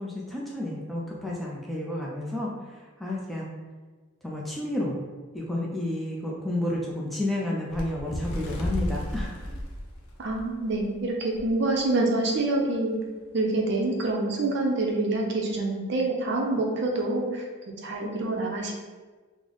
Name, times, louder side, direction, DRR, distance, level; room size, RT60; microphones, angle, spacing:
voice 1, 0.0-2.5 3.0-3.5 4.2-4.9 5.3-9.5, left 1 dB, ahead, -4 dB, 0.3 m, -31 dB
Bird, 7.7-10.9 11.4-11.5 11.8-12.1 12.8-12.9, equal, 85° left, 0.6 m, -33 dB
voice 2, 10.2-13.0 13.3-17.4 17.8-18.8, right 2 dB, 50° right, 0 dB, 0.5 m, -26 dB
3.1 x 2.0 x 3.8 m, 1.4 s
head